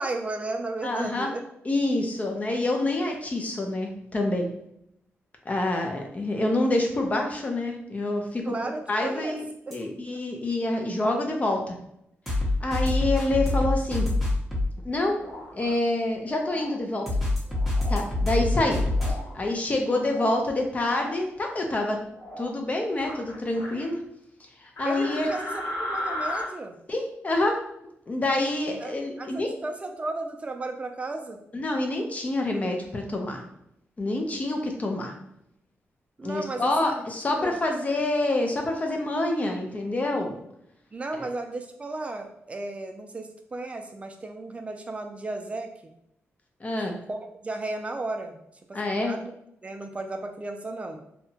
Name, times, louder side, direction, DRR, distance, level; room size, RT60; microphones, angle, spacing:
voice 1, 0.0-1.5 8.5-9.4 9.7-9.8 24.8-26.8 28.8-31.4 36.2-37.0 37.4-37.6 40.9-45.7 46.8-48.4 48.7-49.3 49.6-51.0, right 2 dB, 25° right, 5 dB, 0.3 m, -34 dB
voice 2, 0.8-1.3 1.7-4.5 5.5-9.5 9.7-11.8 12.6-14.1 14.8-15.2 15.5-17.1 17.9-18.9 19.3-22.0 22.4-24.0 24.6-25.3 26.9-27.6 28.1-29.5 31.5-33.4 34.0-35.1 36.2-40.4 41.2-41.3 46.6-47.0 48.7-49.1, left 2 dB, 30° left, 2 dB, 0.5 m, -27 dB
sound 1, 9.7-9.8 12.3-14.7 17.1-19.1, left 2 dB, ahead, 0.8 m, -25 dB
sound 2, 15.1-15.7 16.4-16.7 17.5-18.0 18.9-19.3 19.8-20.4 20.7-21.1 22.1-22.5 22.9-23.9 24.8-26.4, left 1 dB, 80° left, 1.1 m, -36 dB
2.8 x 2.1 x 2.7 m, 0.77 s
wide cardioid pair, 110°, 5 cm